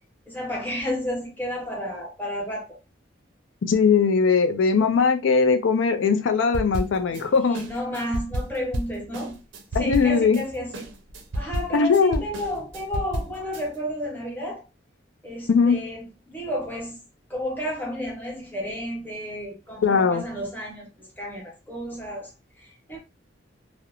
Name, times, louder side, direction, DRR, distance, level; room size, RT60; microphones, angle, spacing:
voice 1, 0.3-2.8 7.1-9.4 9.8-10.9 11.3-14.6 15.2-17.0 17.3-23.0, equal, 10° left, 0.8 m, -32 dB
voice 2, 3.6-7.6 9.7-10.4 11.7-12.2 15.5-15.8 19.8-20.2, left 5 dB, 85° left, 0.4 m, -20 dB
sound 1, 6.5-7.2 7.5-10.4 10.7-13.6, right 1 dB, 80° right, 0.5 m, -31 dB
2.4 x 2.0 x 2.8 m
head